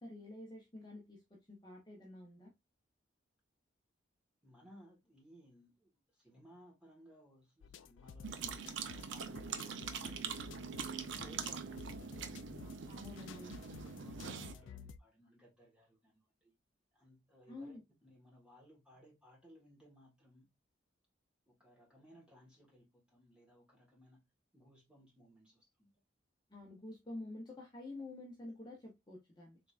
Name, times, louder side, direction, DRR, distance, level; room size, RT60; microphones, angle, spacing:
voice 1, 0.0-2.5 12.9-13.6 17.5-17.8 26.5-29.6, left 2 dB, 20° left, 0.7 m, -49 dB
voice 2, 4.4-8.7 9.1-10.1 10.7-12.7 14.0-16.5 16.9-20.5 21.5-24.2 24.5-26.0, equal, 5° right, 1.3 m, -62 dB
sound 1, 7.6-15.0, left 6 dB, 85° left, 0.3 m, -53 dB
sound 2, 8.2-14.5, right 6 dB, 80° right, 0.5 m, -43 dB
3.7 x 3.3 x 2.3 m
head